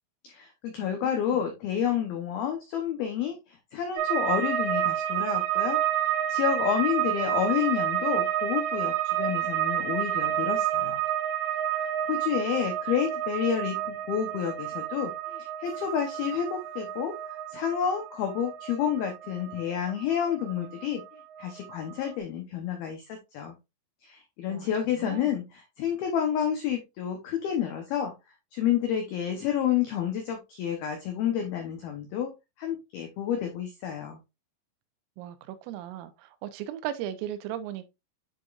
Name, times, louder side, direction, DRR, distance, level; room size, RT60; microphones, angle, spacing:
voice 1, 0.2-5.8 6.3-11.0 11.7-23.5 24.0-28.1 28.5-32.3 32.6-34.2, left 9 dB, 85° left, 2.1 m, -30 dB
sound 1, 4.0-21.1 21.4-22.1, right 11 dB, 60° right, 2.9 m, -30 dB
voice 2, 35.2-37.9, right 11 dB, 90° right, 3.4 m, -37 dB
10.0 x 3.9 x 2.4 m
omnidirectional pair, 5.7 m